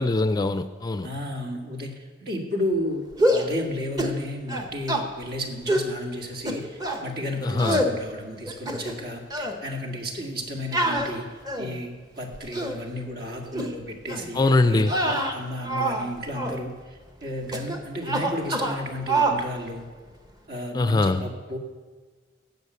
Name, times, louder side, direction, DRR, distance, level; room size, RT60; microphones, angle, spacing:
voice 1, 0.0-1.1 7.4-7.8 14.3-14.9 20.7-21.2, left 2 dB, 20° left, 0.4 m, -22 dB
voice 2, 1.0-11.3 11.6-16.8 17.2-19.9 20.5-21.6, left 1 dB, 60° right, 2.0 m, -33 dB
sound 1, 3.1-3.5 4.0-4.2 4.5-5.1 5.7-5.9 6.5-7.0 7.6-7.9 8.5-9.0 9.3-9.6 10.7-11.8 12.3-12.8 13.5-13.7 14.1-14.3 14.8-16.1 16.3-16.6 17.5-17.8 18.0-18.8 19.1-19.4, right 1 dB, 20° right, 1.1 m, -25 dB
15.5 x 5.7 x 8.2 m
head